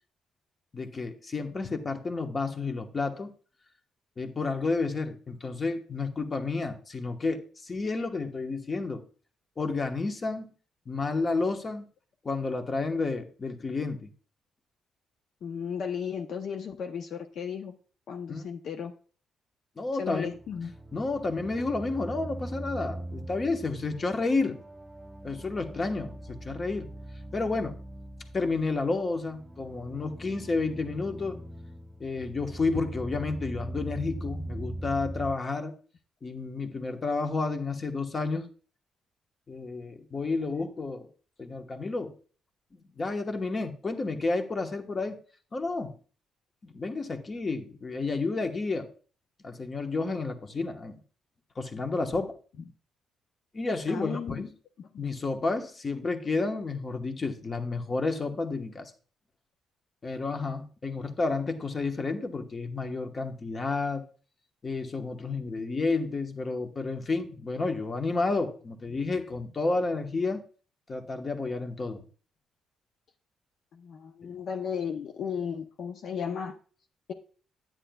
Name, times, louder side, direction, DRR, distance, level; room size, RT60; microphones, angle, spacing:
voice 1, 0.7-3.3 4.2-9.1 9.6-10.5 10.9-11.8 12.2-14.1 18.3-18.5 19.8-20.3 20.9-24.6 25.2-26.9 27.3-27.8 28.3-31.4 32.0-35.7 36.2-38.5 39.5-41.1 41.4-42.2 43.0-45.2 45.5-45.9 46.6-48.9 49.4-51.0 51.6-52.4 53.5-54.5 55.0-58.9 60.0-64.0 64.6-70.4 70.9-72.0, left 3 dB, 35° left, 1.1 m, -31 dB
voice 2, 15.4-17.8 18.1-18.9 20.0-20.7 53.9-54.5 54.8-54.9 73.7-76.6, left 7 dB, 65° left, 0.7 m, -35 dB
sound 1, 20.1-35.3, right 1 dB, 15° right, 0.6 m, -41 dB
9.9 x 9.0 x 2.3 m
cardioid pair, 90°, 0 cm